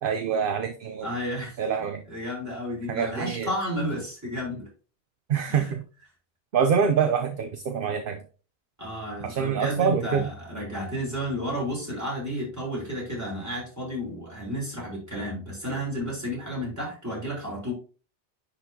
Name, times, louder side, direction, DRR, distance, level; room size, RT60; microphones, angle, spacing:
voice 1, 0.0-1.1 1.6-2.0 2.9-3.5 5.3-5.8 6.5-8.2 9.2-10.3, right 6 dB, 60° right, 7 dB, 0.8 m, -25 dB
voice 2, 1.0-1.6 2.1-4.7 5.5-5.7 8.8-17.7, equal, 15° right, -5 dB, 4.0 m, -32 dB
10.0 x 4.2 x 2.7 m, 0.36 s
omnidirectional pair, 1.1 m